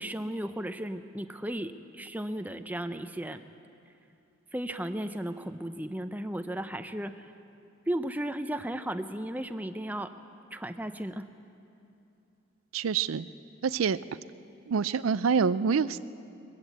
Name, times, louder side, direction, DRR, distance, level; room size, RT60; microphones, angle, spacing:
voice 1, 0.0-3.4 4.5-7.3 7.9-10.1 10.5-11.3, right 1 dB, 10° right, 9 dB, 0.5 m, -35 dB
voice 2, 12.7-13.3 13.6-14.0 14.7-16.0, right 6 dB, 85° right, 16 dB, 0.5 m, -26 dB
21.0 x 15.5 x 8.1 m, 2.7 s
head